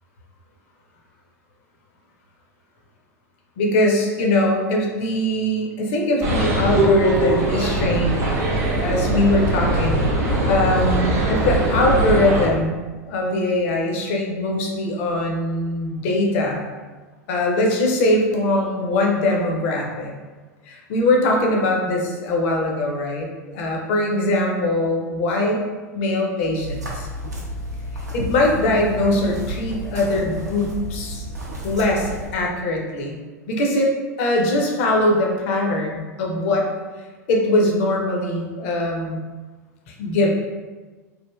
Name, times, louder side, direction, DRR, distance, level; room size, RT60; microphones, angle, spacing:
voice 1, 3.6-8.3 8.7-10.0 10.5-12.8 13.0-16.7 17.3-20.1 20.7-23.3 23.5-25.6 25.9-27.1 28.1-31.2 31.6-33.2 33.5-33.9 34.2-36.7 37.3-39.2 39.9-40.3, left 1 dB, 50° left, 0 dB, 0.6 m, -21 dB
sound 1, 6.2-12.5, right 1 dB, 35° right, 0.6 m, -21 dB
sound 2, 26.5-32.3, equal, 80° right, 0.6 m, -31 dB
3.1 x 2.4 x 2.3 m, 1.3 s
figure-of-eight pair, 85°, 9 cm